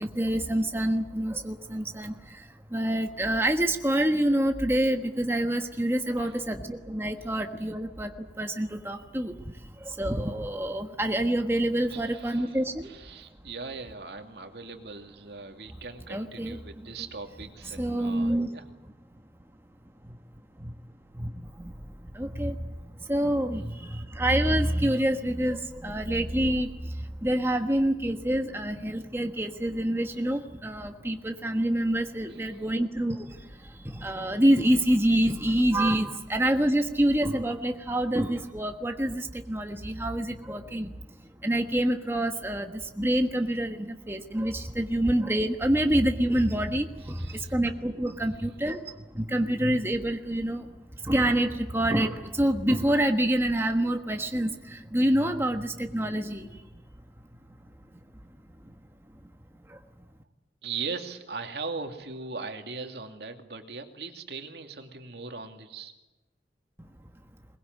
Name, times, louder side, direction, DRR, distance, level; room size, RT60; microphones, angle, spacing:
voice 1, 0.0-12.9 16.1-16.9 17.8-18.5 20.1-20.2 20.6-20.7 21.1-21.7 22.1-40.9 41.4-50.7 51.0-56.6 58.6-58.7 59.7-59.8, right 1 dB, 15° right, 5 dB, 1.3 m, -27 dB
voice 2, 11.9-12.6 12.8-18.6 23.6-23.7 32.3-32.8 47.2-47.5 48.3-48.5 60.6-65.9, right 4 dB, 70° right, 5 dB, 2.6 m, -39 dB
22.0 x 21.5 x 9.5 m, 1.0 s
head